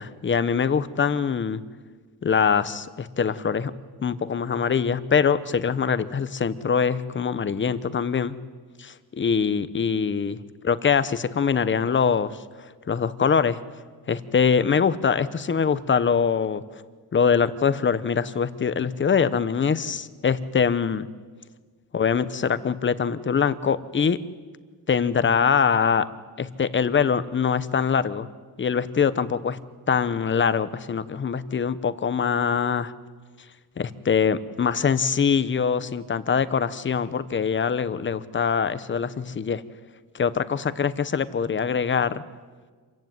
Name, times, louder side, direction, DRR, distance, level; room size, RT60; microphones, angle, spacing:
voice 1, 0.0-1.6 2.2-3.7 4.0-8.3 8.8-10.4 10.6-12.4 12.9-13.6 14.1-16.6 17.1-21.1 21.9-24.2 24.9-26.1 26.4-28.3 28.6-29.6 29.9-32.9 33.8-39.6 40.1-42.2, left 6 dB, 30° left, 14 dB, 0.9 m, -23 dB
26.5 x 15.0 x 9.5 m, 1.5 s
cardioid pair, 135°, 37 cm